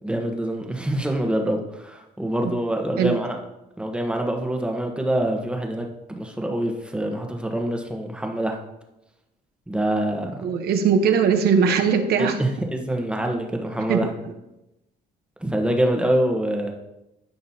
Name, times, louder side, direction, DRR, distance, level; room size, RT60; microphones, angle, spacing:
voice 1, 0.0-3.4 3.8-8.6 9.7-10.4 12.2-14.1 15.4-16.7, right 1 dB, 5° right, 2 dB, 1.2 m, -25 dB
voice 2, 10.4-12.4 13.9-14.0, right 6 dB, 70° right, 7 dB, 1.1 m, -20 dB
13.5 x 5.3 x 2.8 m, 0.94 s
cardioid pair, 110°, 17 cm